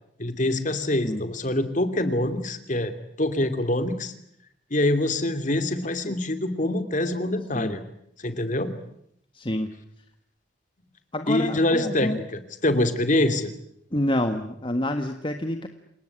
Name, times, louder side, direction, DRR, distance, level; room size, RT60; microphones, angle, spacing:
voice 1, 0.2-4.1 4.7-7.8 8.2-8.7 11.3-13.5, left 1 dB, 45° left, 10 dB, 2.8 m, -25 dB
voice 2, 9.3-9.7 11.1-12.2 13.9-15.7, left 1 dB, 30° left, 7 dB, 1.5 m, -27 dB
28.5 x 19.0 x 10.0 m, 0.75 s
head